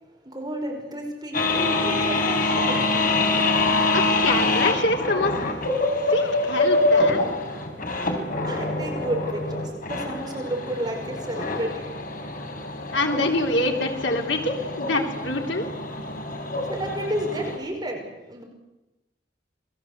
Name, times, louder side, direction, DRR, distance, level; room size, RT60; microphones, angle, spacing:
voice 1, 0.3-2.8 8.4-11.7 16.7-18.4, right 1 dB, 25° right, 1 dB, 5.4 m, -31 dB
sound 1, 1.3-17.6, left 2 dB, 50° left, 4.7 m, -25 dB
voice 2, 3.9-5.5 6.0-7.4 12.9-15.7, left 2 dB, 75° left, 2 dB, 3.5 m, -25 dB
28.5 x 20.5 x 8.1 m, 1.0 s
head